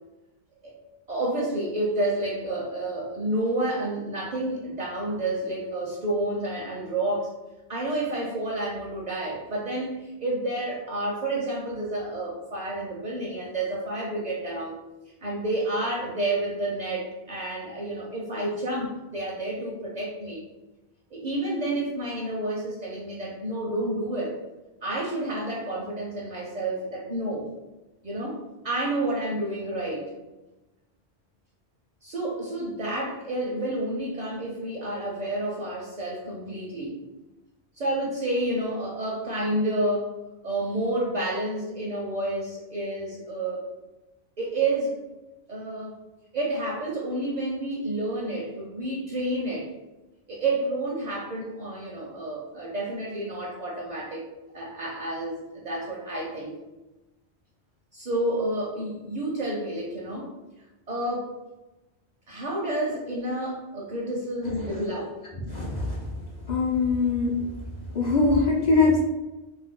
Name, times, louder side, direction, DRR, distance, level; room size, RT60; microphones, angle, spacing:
voice 1, 1.1-7.3 7.7-14.8 15.2-20.5 21.1-24.4 24.8-27.5 28.0-30.1 32.0-37.0 37.7-40.1 40.4-43.6 44.4-45.0 45.5-46.0 46.3-49.7 50.3-54.2 54.5-56.6 57.9-60.3 60.9-61.3 62.3-65.2, right 1 dB, 50° right, -3 dB, 0.5 m, -30 dB
voice 2, 65.4-66.1 66.4-67.4 67.9-69.0, left 3 dB, 50° left, -4 dB, 0.6 m, -22 dB
2.6 x 2.2 x 3.5 m, 1.0 s
omnidirectional pair, 1.1 m